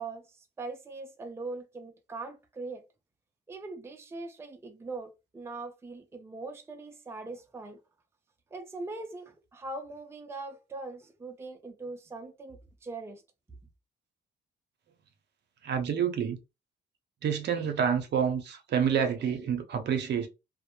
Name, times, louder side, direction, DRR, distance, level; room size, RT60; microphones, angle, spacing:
voice 1, 0.0-2.8 3.5-7.8 8.5-13.2, right 3 dB, 10° right, 0.4 m, -41 dB
voice 2, 15.6-16.4 17.2-20.3, right 7 dB, 60° right, 0.7 m, -28 dB
2.1 x 2.1 x 2.9 m
cardioid pair, 90°, 20 cm